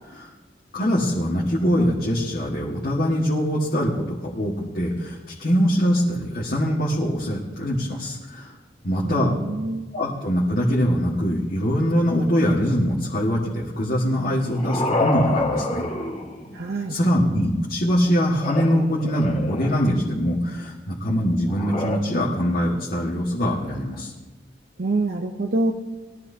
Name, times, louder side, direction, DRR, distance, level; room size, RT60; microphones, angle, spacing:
voice 1, 0.7-8.5 8.8-9.4 9.9-15.9 16.9-24.1, equal, 55° left, -5 dB, 1.8 m, -23 dB
voice 2, 9.0-9.9 16.5-17.0 24.8-25.7, right 2 dB, 60° right, 2 dB, 0.8 m, -26 dB
sound 1, 14.2-16.8 18.3-20.1 21.5-22.0, left 2 dB, 35° left, 1.9 m, -28 dB
21.0 x 13.0 x 2.8 m, 1.2 s
head